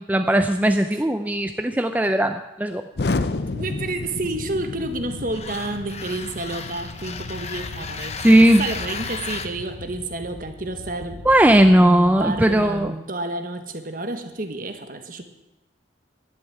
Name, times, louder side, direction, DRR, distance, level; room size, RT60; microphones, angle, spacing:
voice 1, 0.1-2.8 8.2-8.6 11.3-12.9, right 1 dB, 10° right, 7 dB, 0.4 m, -17 dB
Explosion, 2.9-12.9, left 3 dB, 60° left, 0.6 m, -33 dB
voice 2, 3.5-11.2 11.8-15.2, right 2 dB, 45° right, 7 dB, 1.4 m, -30 dB
sound 1, 3.6-9.5, left 5 dB, 35° left, 1.0 m, -36 dB
11.5 x 10.5 x 8.8 m, 0.95 s
head